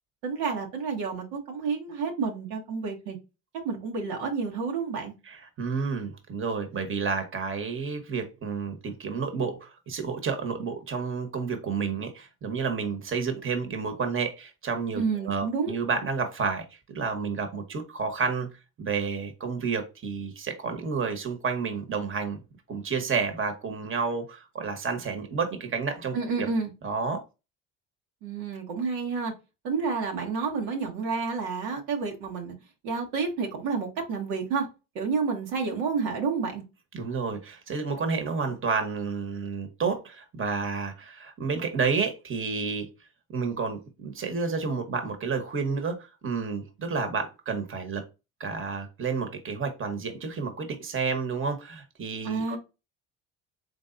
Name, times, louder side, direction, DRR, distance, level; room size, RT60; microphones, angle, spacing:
voice 1, 0.2-3.2 3.6-5.1 14.9-15.7 26.1-26.7 28.2-29.3 29.6-32.5 32.8-34.7 34.9-36.6 52.2-52.6, right 5 dB, 85° right, 1.3 m, -30 dB
voice 2, 5.3-18.5 18.8-22.4 22.7-26.5 26.8-27.2 36.9-42.9 43.3-48.0 48.4-52.6, right 5 dB, 35° right, 1.2 m, -30 dB
3.9 x 3.5 x 2.5 m
supercardioid pair, 75°, 35 cm